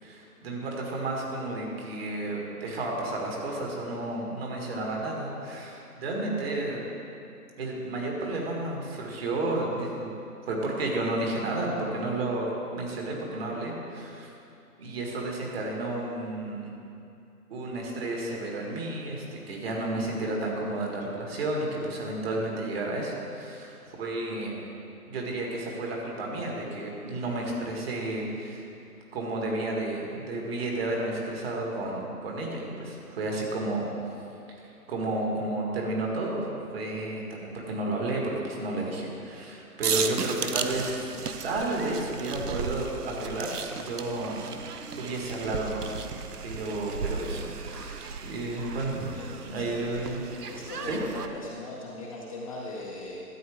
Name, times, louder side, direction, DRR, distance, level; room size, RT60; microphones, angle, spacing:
voice 1, 0.0-6.8 7.6-10.2 10.5-14.3 14.8-16.8 17.5-24.6 25.1-28.6 29.1-33.9 34.5-41.1 41.4-44.5 44.9-45.9 46.4-49.2 49.5-50.2 50.8-51.0, right 2 dB, 40° right, -1 dB, 1.9 m, -32 dB
sound 1, 39.8-51.3, right 5 dB, 90° right, 0.8 m, -35 dB
voice 2, 49.1-50.2 50.5-53.2, left 2 dB, 25° left, -4 dB, 0.7 m, -40 dB
12.5 x 8.3 x 3.5 m, 2.6 s
hypercardioid pair, 145°, 46 cm